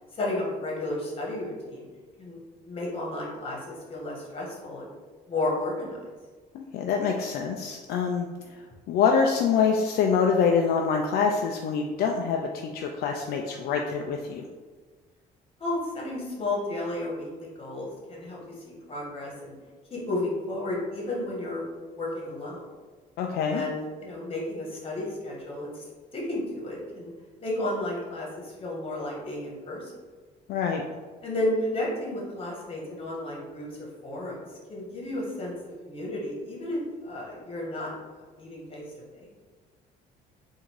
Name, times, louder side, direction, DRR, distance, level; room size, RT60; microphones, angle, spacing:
voice 1, 0.1-1.8 2.2-2.4 2.6-4.9 5.3-6.0 15.6-19.5 19.9-21.6 21.9-22.7 23.5-25.8 26.1-27.1 27.4-29.9 31.2-35.5 35.8-37.9 38.3-38.8 39.1-39.3, left 1 dB, 35° left, -3 dB, 1.5 m, -32 dB
voice 2, 6.5-8.3 8.9-14.4 23.2-23.6 30.5-30.8, left 6 dB, 70° left, 2 dB, 0.4 m, -25 dB
3.7 x 2.7 x 4.6 m, 1.4 s
cardioid pair, 110°, 17 cm